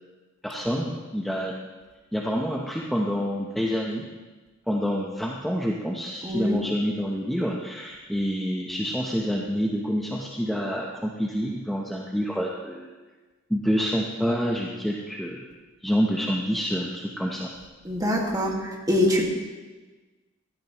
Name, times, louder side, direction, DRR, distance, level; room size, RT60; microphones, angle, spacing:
voice 1, 0.4-1.5 2.1-4.1 4.7-12.9 13.5-15.5 15.8-17.5, equal, ahead, -2 dB, 0.8 m, -27 dB
voice 2, 6.2-6.6 17.8-19.2, left 1 dB, 15° right, -1 dB, 1.8 m, -24 dB
15.5 x 12.5 x 3.0 m, 1.3 s
head